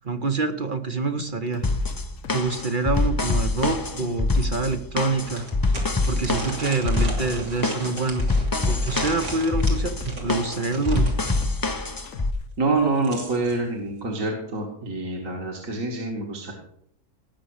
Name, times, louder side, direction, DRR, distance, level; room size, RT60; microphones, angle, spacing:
voice 1, 0.0-1.6 2.3-5.5 6.1-8.3 8.7-11.1, right 3 dB, 40° right, 8 dB, 0.9 m, -26 dB
sound 1, 1.2-3.3 3.6-6.1 6.4-8.9 9.2-11.7 12.1-12.4, left 8 dB, 60° left, 1.3 m, -42 dB
sound 2, 1.6-12.3, left 3 dB, 25° left, 0.5 m, -25 dB
sound 3, 4.4-4.5 5.3-11.4 12.7-13.6, right 2 dB, 85° right, 3.5 m, -37 dB
voice 2, 12.6-16.5, right 3 dB, 55° right, 0 dB, 2.2 m, -26 dB
18.0 x 6.9 x 6.5 m, 0.69 s
omnidirectional pair, 1.7 m